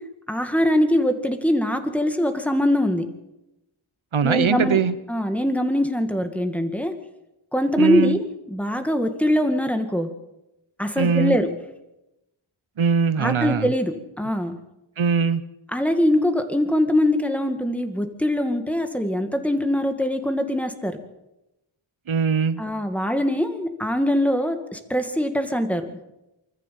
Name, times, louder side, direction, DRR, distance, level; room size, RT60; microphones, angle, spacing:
voice 1, 0.3-3.0 4.2-4.8 5.1-6.9 7.5-8.2 8.5-10.1 10.8-11.5 13.2-14.6 15.7-21.0 22.6-26.0, left 1 dB, 5° left, 7 dB, 2.0 m, -22 dB
voice 2, 4.1-5.0 7.8-8.2 11.0-11.4 12.8-13.7 15.0-15.4 22.1-22.6, right 6 dB, 75° right, 14 dB, 1.2 m, -21 dB
25.0 x 14.0 x 7.6 m, 0.93 s
wide cardioid pair, 100°, 49 cm